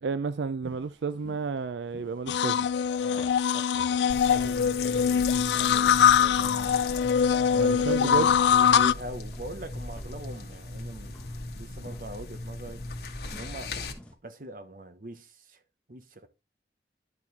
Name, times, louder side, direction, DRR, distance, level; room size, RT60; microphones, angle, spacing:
voice 1, 0.0-2.7 7.6-8.3, right 5 dB, 85° right, 0.4 m, -31 dB
sound 1, 0.6-14.1, left 1 dB, 5° left, 1.2 m, -54 dB
sound 2, 2.3-8.9, left 8 dB, 80° left, 0.3 m, -23 dB
voice 2, 3.0-6.8 7.4-11.3 11.5-12.8 13.3-13.7 14.2-15.6 15.9-16.3, right 1 dB, 50° right, 1.0 m, -42 dB
sound 3, 4.1-13.9, left 3 dB, 60° left, 1.4 m, -38 dB
11.0 x 4.5 x 4.0 m
head